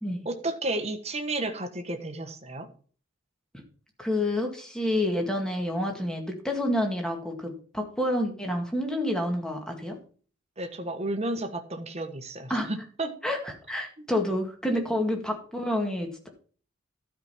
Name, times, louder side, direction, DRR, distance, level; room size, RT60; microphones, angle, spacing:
voice 1, 0.2-2.7 10.6-13.1, right 2 dB, 30° right, 5 dB, 1.4 m, -32 dB
voice 2, 4.0-10.0 12.5-12.7 13.2-16.3, left 1 dB, 5° left, 2 dB, 2.0 m, -28 dB
12.5 x 5.2 x 5.7 m, 0.43 s
head